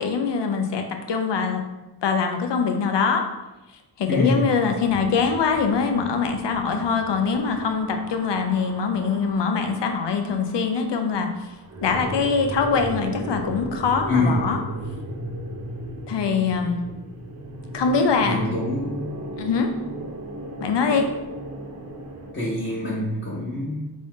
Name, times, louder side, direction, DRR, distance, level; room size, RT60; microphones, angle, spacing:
voice 1, 0.0-1.6 2.0-3.2 4.0-11.5 11.8-14.6 16.1-16.8 17.7-18.4 19.4-19.7 20.6-21.1, left 5 dB, 75° left, 5 dB, 0.6 m, -23 dB
voice 2, 4.1-4.4 14.1-14.5 18.2-19.1 22.3-23.8, left 2 dB, 30° left, -8 dB, 0.8 m, -24 dB
sound 1, 4.8-22.3, right 1 dB, 40° right, 0.7 m, -36 dB
3.5 x 2.6 x 3.5 m, 1.0 s
wide cardioid pair, 90°, 43 cm